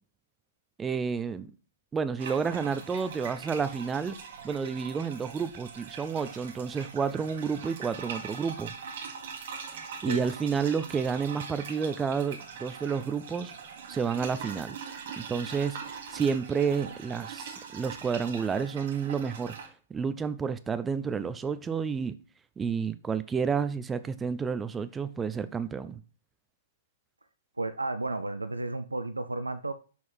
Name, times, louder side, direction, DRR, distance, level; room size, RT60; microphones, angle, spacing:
voice 1, 0.8-1.5 1.9-4.2 4.4-8.7 10.0-13.5 13.9-14.8 15.2-22.1 22.6-26.0, right 6 dB, 15° right, 0.5 m, -30 dB
sound 1, 2.2-19.7, right 6 dB, 50° right, 1.5 m, -42 dB
voice 2, 27.6-29.7, right 2 dB, 80° right, 0.5 m, -33 dB
6.2 x 5.5 x 4.6 m
figure-of-eight pair, 115°, 0 cm